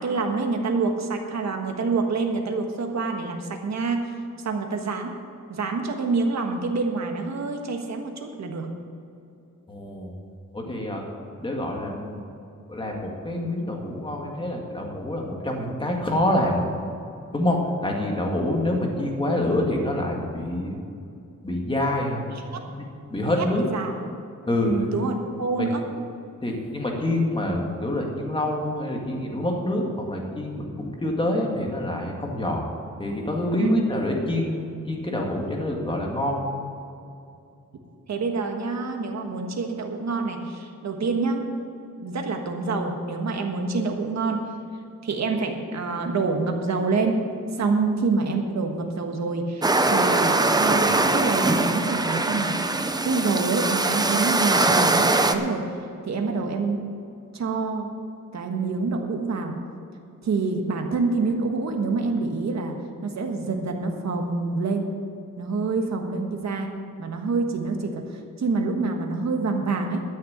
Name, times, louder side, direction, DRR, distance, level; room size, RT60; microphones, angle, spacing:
voice 1, 0.0-4.1 4.4-5.1 5.5-8.7 22.3-22.6 23.4-23.5 23.7-24.0 24.6-25.8 33.6-33.8 38.1-41.5 42.0-44.5 45.0-47.2 47.5-52.6 53.0-55.7 56.0-56.8 57.3-57.9 58.3-59.6 60.2-62.7 63.0-64.9 65.4-66.7 67.0-70.0, right 3 dB, 60° right, 3 dB, 1.5 m, -26 dB
voice 2, 9.7-10.1 10.5-11.0 11.4-12.2 12.7-16.7 17.3-20.8 21.4-22.2 22.8-22.9 23.1-23.6 24.5-24.7 25.6-25.7 26.4-32.6 33.0-36.5, left 1 dB, 15° left, 0 dB, 1.8 m, -26 dB
sound 1, 49.6-55.3, right 2 dB, 15° right, 0.5 m, -22 dB
12.5 x 6.5 x 8.7 m, 2.6 s
wide cardioid pair, 165°, 31 cm